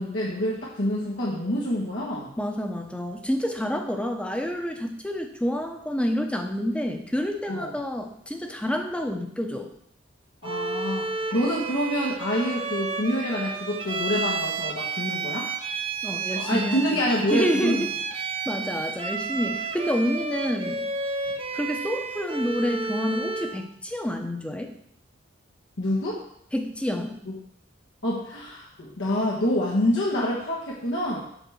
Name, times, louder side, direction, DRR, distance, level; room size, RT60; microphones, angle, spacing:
voice 1, 0.0-2.3 7.5-7.7 10.4-15.5 16.3-17.8 25.8-26.3 27.2-27.3 28.0-31.2, left 1 dB, 80° left, -5 dB, 1.4 m, -27 dB
voice 2, 2.4-9.7 16.0-17.0 17.3-17.9 18.5-20.8 21.5-24.7 26.5-27.2, equal, 5° left, 4 dB, 0.8 m, -28 dB
Bowed string instrument, 10.4-23.6, right 4 dB, 30° right, 0.6 m, -31 dB
8.1 x 3.5 x 6.4 m, 0.70 s
head